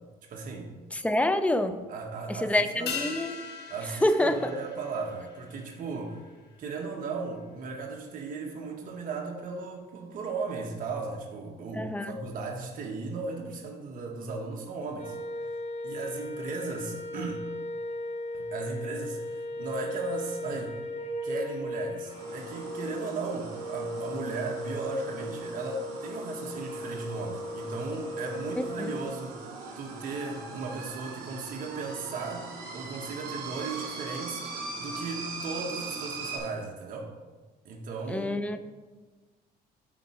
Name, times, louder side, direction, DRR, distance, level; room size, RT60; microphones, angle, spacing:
voice 1, 0.3-0.7 1.9-2.9 3.7-6.2 6.6-15.6 15.8-17.4 18.3-20.8 21.2-29.4 29.7-37.1 37.6-38.4, right 4 dB, 55° right, 0 dB, 1.2 m, -36 dB
voice 2, 0.9-1.8 2.3-3.4 4.0-4.5 11.8-12.1 17.2-17.3 28.8-28.9 38.1-38.7, left 1 dB, 10° left, 9 dB, 0.5 m, -27 dB
sound 1, 2.9-7.6 7.8-7.9, left 6 dB, 80° left, 1.2 m, -41 dB
sound 2, 15.0-29.0, left 1 dB, 40° left, 1.6 m, -37 dB
sound 3, 22.0-36.4, right 4 dB, 80° right, 2.1 m, -41 dB
10.0 x 4.0 x 4.8 m, 1.3 s
cardioid pair, 110°, 17 cm